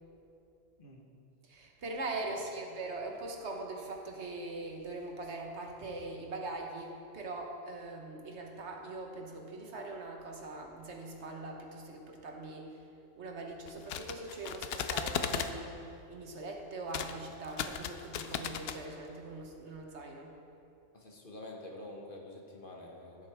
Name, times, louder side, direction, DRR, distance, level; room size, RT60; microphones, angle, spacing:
voice 1, 1.4-12.8 13.2-20.4, right 2 dB, 65° right, 1 dB, 1.4 m, -42 dB
sound 1, 13.7-15.5 16.9-17.1 17.4-18.8, left 8 dB, 65° left, 0.7 m, -36 dB
voice 2, 20.9-23.3, left 2 dB, 45° left, 0 dB, 1.3 m, -47 dB
14.5 x 8.0 x 3.5 m, 2.6 s
omnidirectional pair, 1.2 m